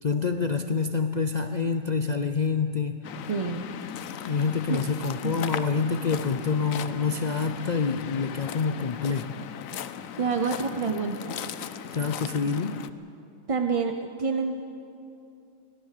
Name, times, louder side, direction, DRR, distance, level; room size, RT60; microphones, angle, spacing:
voice 1, 0.0-3.0 4.2-9.4 11.9-12.8, left 5 dB, 45° left, 8 dB, 0.6 m, -27 dB
Waves surf, 3.0-12.9, left 9 dB, 85° left, 1.1 m, -37 dB
voice 2, 3.3-3.7 4.7-4.8 5.2-5.3 10.2-11.4 13.5-14.6, right 5 dB, 35° right, 6 dB, 0.6 m, -28 dB
24.5 x 17.5 x 6.7 m, 2.7 s
omnidirectional pair, 1.4 m